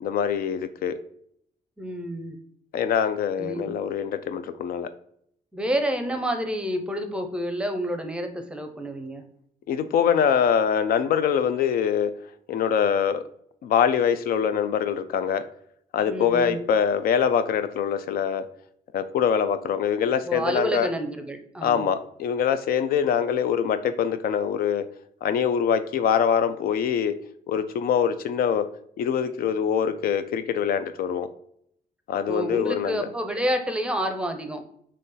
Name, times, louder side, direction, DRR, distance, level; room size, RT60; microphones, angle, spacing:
voice 1, 0.0-1.0 2.7-4.9 9.7-12.1 12.5-13.2 13.6-15.4 15.9-18.4 18.9-20.9 21.6-24.9 25.2-27.2 27.5-28.6 29.0-31.3 32.1-33.1, left 8 dB, 75° left, 11 dB, 0.4 m, -24 dB
voice 2, 1.8-2.4 3.4-3.7 5.5-9.2 16.1-16.6 20.2-21.9 32.3-34.6, equal, 5° right, 5 dB, 0.6 m, -29 dB
4.1 x 3.1 x 3.8 m, 0.68 s
cardioid pair, 140°, 15 cm